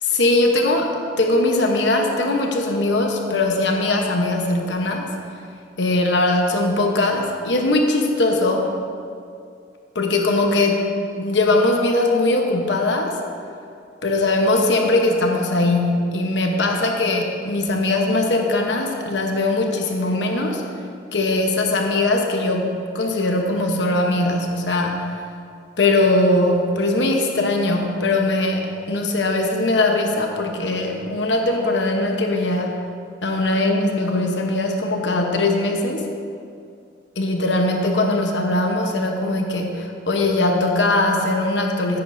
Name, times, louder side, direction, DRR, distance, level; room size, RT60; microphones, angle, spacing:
voice 1, 0.0-0.9 1.2-5.1 5.8-8.7 9.9-10.8 11.2-13.2 14.0-20.6 21.1-25.1 25.8-32.8 33.2-36.0 37.2-42.0, left 2 dB, 85° left, 2 dB, 1.0 m, -20 dB
14.0 x 9.7 x 2.7 m, 2.4 s
head